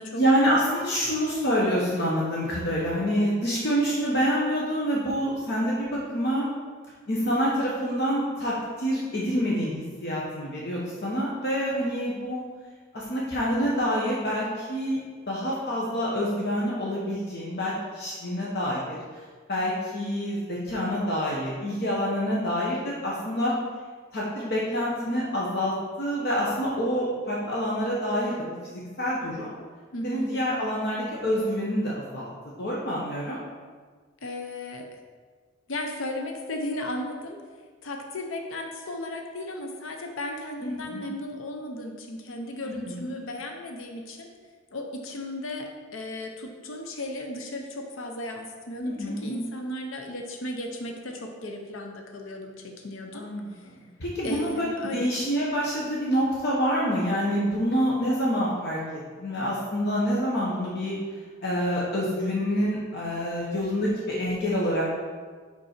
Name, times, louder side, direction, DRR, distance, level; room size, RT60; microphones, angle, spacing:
voice 1, 0.1-6.5 7.1-12.4 12.9-15.0 15.3-19.0 19.5-23.6 24.1-28.3 28.7-29.5 30.0-32.3 32.6-33.4 40.6-41.0 42.9-43.0 48.8-49.5 53.1-53.5 54.0-60.9 61.4-64.8, equal, 50° left, -5 dB, 1.0 m, -27 dB
voice 2, 29.9-30.3 34.2-34.9 35.7-37.4 37.8-44.3 44.7-53.7 54.2-55.1, left 1 dB, 75° left, 3 dB, 0.7 m, -35 dB
5.4 x 5.3 x 4.4 m, 1.5 s
head